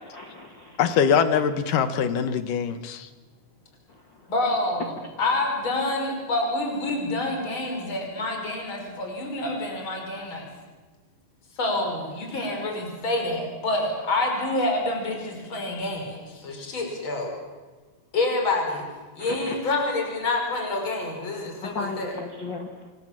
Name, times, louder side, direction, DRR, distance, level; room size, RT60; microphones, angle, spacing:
voice 1, 0.0-0.8 5.0-5.1 19.2-19.6 21.6-22.9, left 3 dB, 45° left, 4 dB, 1.6 m, -35 dB
voice 2, 0.8-3.1, left 7 dB, 65° left, 11 dB, 2.4 m, -23 dB
voice 3, 4.3-4.9 5.2-10.5 11.6-17.3 18.1-18.8 19.2-22.1, left 2 dB, 30° left, 2 dB, 6.3 m, -27 dB
27.5 x 27.5 x 7.5 m, 1.3 s
omnidirectional pair, 4.8 m